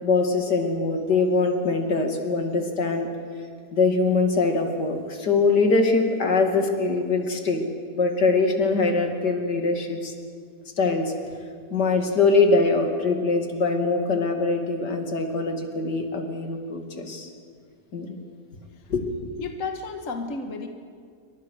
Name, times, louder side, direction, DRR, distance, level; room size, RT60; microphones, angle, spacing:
voice 1, 0.0-3.1 3.7-7.6 7.9-10.1 10.8-11.4 11.7-17.3 17.9-18.2 18.9-19.4, left 3 dB, 75° left, 4 dB, 3.1 m, -23 dB
voice 2, 19.4-20.7, left 4 dB, 50° left, 5 dB, 1.9 m, -32 dB
28.5 x 25.0 x 6.6 m, 2.1 s
omnidirectional pair, 1.8 m